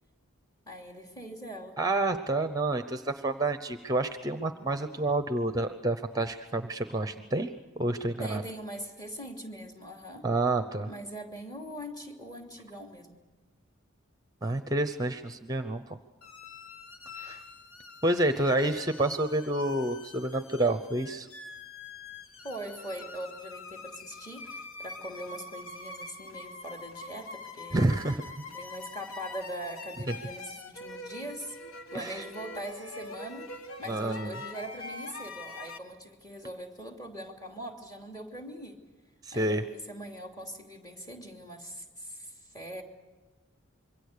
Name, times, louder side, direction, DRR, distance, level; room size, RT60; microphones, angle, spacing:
voice 1, 0.7-1.8 8.2-10.3 10.9-13.2 22.4-27.8 28.5-31.6 31.9-38.8 39.3-42.8, equal, 20° left, 3 dB, 2.8 m, -42 dB
voice 2, 1.8-7.5 7.8-8.4 10.2-10.9 14.4-16.0 17.1-17.4 18.0-21.3 27.7-28.2 30.1-30.2 31.9-32.2 33.9-34.3 39.2-39.7, right 2 dB, 20° right, 9 dB, 0.8 m, -29 dB
sound 1, 16.2-35.8, left 3 dB, 75° left, 1.4 m, -44 dB
26.5 x 23.5 x 6.7 m, 1.3 s
head